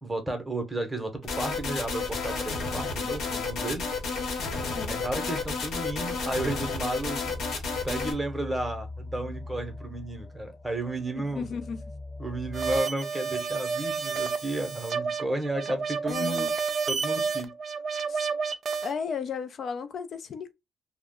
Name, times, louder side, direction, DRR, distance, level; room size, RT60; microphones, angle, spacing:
voice 1, 0.0-3.9 4.9-7.4 7.8-11.5 12.2-16.5 16.9-17.5, right 1 dB, 10° right, 0.8 m, -33 dB
sound 1, 1.2-8.1, left 4 dB, 75° left, 0.9 m, -31 dB
voice 2, 4.6-5.0 11.1-11.8 16.1-16.5 18.1-18.3 18.8-20.5, left 6 dB, 55° left, 0.4 m, -34 dB
sound 2, 7.2-12.8, left 2 dB, 25° left, 0.8 m, -41 dB
sound 3, 12.5-18.9, right 5 dB, 50° right, 0.4 m, -30 dB
2.3 x 2.0 x 3.6 m
cardioid pair, 90°, 0 cm